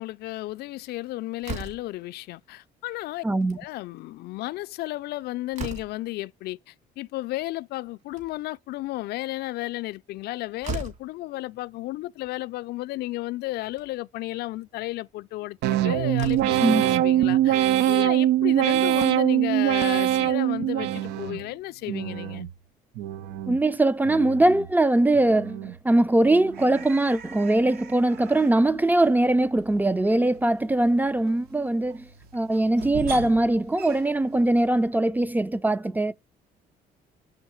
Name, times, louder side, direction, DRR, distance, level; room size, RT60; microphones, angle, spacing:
voice 1, 0.0-3.2 3.6-22.5, left 17 dB, 70° left, 0.4 m, -33 dB
Slam, 1.4-2.0 3.3-3.6 4.0-4.1 4.3-4.4 5.0-6.1 7.9-8.6 10.2-10.3 10.6-11.1 12.2-12.3 12.7-12.8 13.6-13.9 15.6-15.7 16.1-16.7, right 3 dB, 40° right, 2.5 m, -37 dB
voice 2, 3.2-3.6 16.6-16.8 23.5-32.0 32.3-36.1, right 2 dB, 10° right, 0.4 m, -21 dB
sound 1, 15.6-21.4 21.9-22.5 22.9-23.6 24.0-24.7 25.1-25.7 26.2-26.8, right 12 dB, 85° right, 0.6 m, -23 dB
sound 2, 26.2-34.9, right 5 dB, 70° right, 1.4 m, -43 dB
7.0 x 5.6 x 4.4 m
cardioid pair, 110°, 17 cm